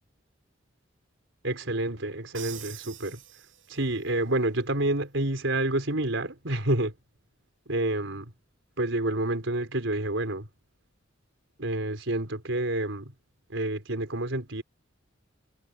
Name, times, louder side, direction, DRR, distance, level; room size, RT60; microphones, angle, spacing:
voice 1, 1.4-3.2 3.7-6.9 7.7-8.3 8.8-10.5 11.6-13.1 13.5-14.6, right 1 dB, 75° right, 4.4 m, -28 dB
Crash cymbal, 2.3-4.1, right 11 dB, 90° right, 7.0 m, -45 dB
head